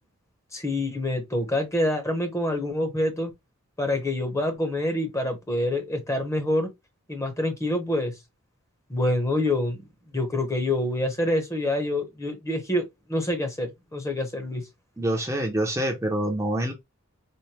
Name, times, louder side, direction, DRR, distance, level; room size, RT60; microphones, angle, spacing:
voice 1, 0.5-3.3 3.8-6.7 7.1-8.1 8.9-9.8 10.1-12.8 13.1-14.6, left 1 dB, 15° left, 0.9 m, -26 dB
voice 2, 15.0-16.7, right 1 dB, 10° right, 0.6 m, -26 dB
4.3 x 2.1 x 3.2 m
head